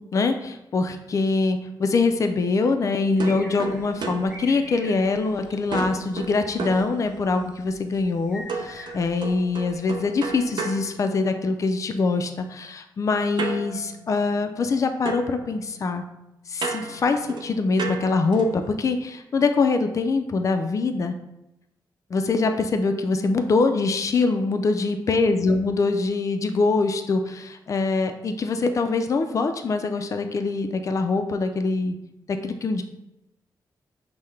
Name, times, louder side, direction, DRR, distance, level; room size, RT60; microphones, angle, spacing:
voice 1, 0.1-16.0 16.5-21.1 22.1-32.0 32.3-32.8, left 3 dB, 40° left, 7 dB, 0.3 m, -24 dB
sound 1, 3.1-10.5, equal, 5° right, 1.3 m, -46 dB
sound 2, 3.2-5.3 5.7-7.5 8.5-11.7 13.4-14.8 15.0-18.7, right 4 dB, 65° right, 0.5 m, -34 dB
5.5 x 2.1 x 3.2 m, 0.89 s
wide cardioid pair, 120°, 8 cm